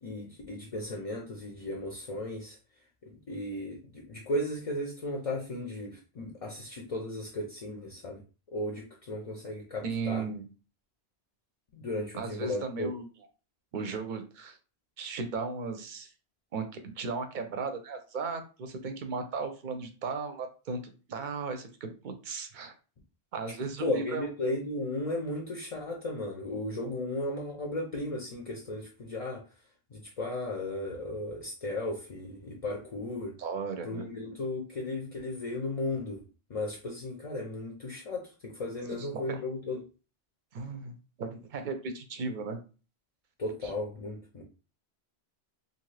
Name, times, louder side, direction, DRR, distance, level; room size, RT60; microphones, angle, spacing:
voice 1, 0.0-2.6 3.0-8.2 8.5-10.2 11.7-12.9 23.8-29.4 29.9-33.3 33.8-36.2 36.5-39.8 43.4-44.4, left 1 dB, 45° left, 0 dB, 0.5 m, -35 dB
voice 2, 9.8-10.4 12.1-13.1 13.7-14.6 15.0-16.1 16.5-22.7 23.3-24.3 33.4-34.1 38.8-39.4 40.5-42.6 43.6-43.7, right 4 dB, 60° right, 7 dB, 0.6 m, -36 dB
2.6 x 2.5 x 3.2 m, 0.35 s
omnidirectional pair, 1.1 m